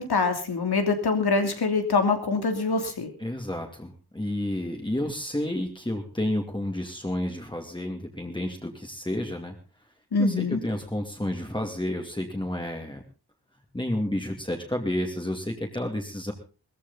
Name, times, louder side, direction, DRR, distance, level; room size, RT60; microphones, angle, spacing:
voice 1, 0.0-3.1 10.1-10.6, left 4 dB, 80° left, 5 dB, 3.1 m, -24 dB
voice 2, 3.2-9.5 10.2-13.0 13.7-16.3, left 1 dB, 10° left, 2 dB, 2.6 m, -30 dB
19.0 x 14.5 x 4.1 m, 0.35 s
wide cardioid pair, 100°, 38 cm